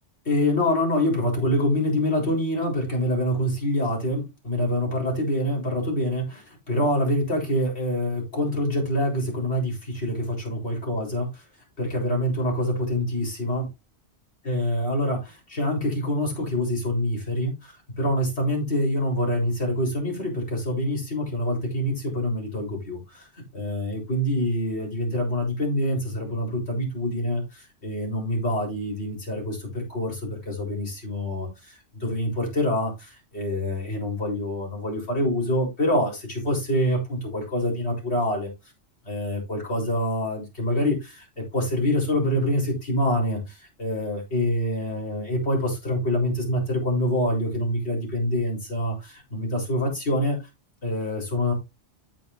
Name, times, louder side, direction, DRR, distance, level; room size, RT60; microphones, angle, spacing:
voice 1, 0.2-11.3 11.8-13.7 14.4-23.3 23.5-38.5 39.0-50.4 50.8-51.5, left 1 dB, 70° left, 4.4 m, -26 dB
13.5 x 5.5 x 2.6 m
omnidirectional pair, 1.2 m